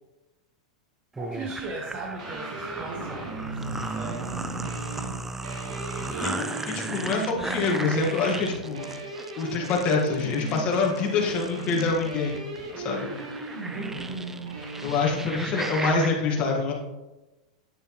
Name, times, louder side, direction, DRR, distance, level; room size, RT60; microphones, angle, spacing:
sound 1, 1.2-16.1, right 3 dB, 10° right, 0.4 m, -36 dB
voice 1, 1.2-4.4 6.0-6.7 13.7-14.2, right 2 dB, 40° right, -1 dB, 1.4 m, -38 dB
sound 2, 2.2-15.3, right 3 dB, 85° right, 1.8 m, -37 dB
voice 2, 6.2-8.9 9.4-12.5 12.8-13.1 14.8-16.7, left 4 dB, 35° left, 0 dB, 1.7 m, -26 dB
9.1 x 6.6 x 3.2 m, 1.1 s
supercardioid pair, 135°, 4 cm